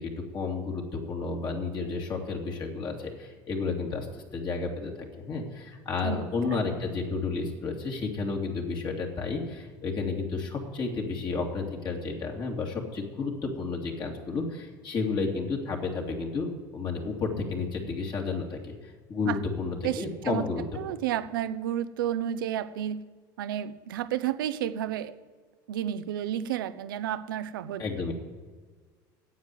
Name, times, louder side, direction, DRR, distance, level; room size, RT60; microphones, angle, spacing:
voice 1, 0.0-18.7 19.1-20.6 27.8-28.1, left 4 dB, 40° left, 0 dB, 2.6 m, -32 dB
voice 2, 19.8-20.4 20.8-23.0 23.4-25.1 25.7-27.8, right 11 dB, 90° right, 13 dB, 0.7 m, -31 dB
9.4 x 8.1 x 9.2 m, 1.5 s
supercardioid pair, 90°, 11 cm